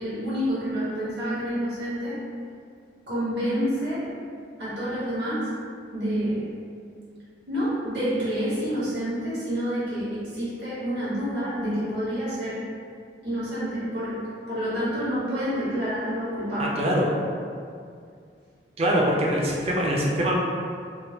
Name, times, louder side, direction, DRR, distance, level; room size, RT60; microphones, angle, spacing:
voice 1, 0.0-2.2 3.1-4.1 4.6-5.5 5.9-6.5 7.5-12.6 13.2-14.2 14.5-16.7, equal, 85° right, -10 dB, 1.4 m, -28 dB
voice 2, 16.6-17.0 18.8-20.4, equal, 35° right, -2 dB, 0.4 m, -23 dB
3.4 x 2.1 x 2.8 m, 2.3 s
head